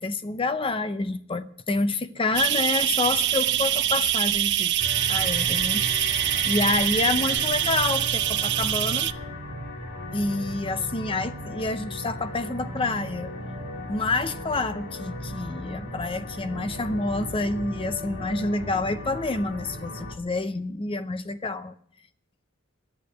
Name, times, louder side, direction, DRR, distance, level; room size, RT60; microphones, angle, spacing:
voice 1, 0.0-4.7 5.1-9.1 10.1-13.3 13.9-21.7, left 3 dB, 25° left, 0.6 m, -28 dB
sound 1, 2.3-9.1, right 12 dB, 55° right, 0.5 m, -24 dB
sound 2, 4.8-20.1, left 1 dB, 60° left, 1.7 m, -36 dB
11.5 x 8.5 x 9.0 m
head